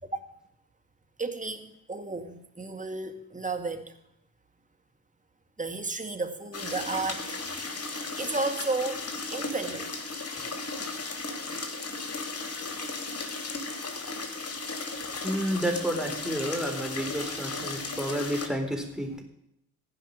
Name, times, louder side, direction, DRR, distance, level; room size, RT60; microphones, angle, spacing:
voice 1, 1.2-3.9 5.6-7.6 8.2-9.0 9.3-9.9, right 3 dB, 20° right, 6 dB, 2.1 m, -33 dB
sound 1, 6.5-18.5, left 3 dB, 35° left, 2.9 m, -35 dB
voice 2, 15.2-19.2, equal, ahead, 3 dB, 3.9 m, -30 dB
15.5 x 5.7 x 9.9 m, 0.81 s
hypercardioid pair, 45°, 42 cm